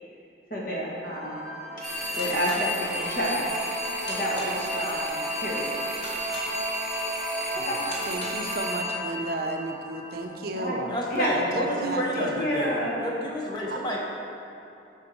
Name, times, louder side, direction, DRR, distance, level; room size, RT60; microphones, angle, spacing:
voice 1, 0.5-1.4 2.1-3.4 4.1-5.7 7.7-7.8 10.6-10.8 11.1-11.3 12.2-13.0, equal, 50° left, -5 dB, 1.6 m, -29 dB
sound 1, 1.1-11.4, right 1 dB, 30° right, 0.9 m, -36 dB
sound 2, 1.8-10.0, equal, ahead, 0.7 m, -34 dB
sound 3, 1.9-8.6, left 1 dB, 65° left, 1.9 m, -44 dB
voice 2, 8.0-10.9 11.3-12.4 13.7-13.8, right 2 dB, 55° right, 4 dB, 0.5 m, -33 dB
voice 3, 10.9-14.0, equal, 25° left, -2 dB, 1.0 m, -30 dB
7.1 x 5.2 x 5.4 m, 2.8 s
head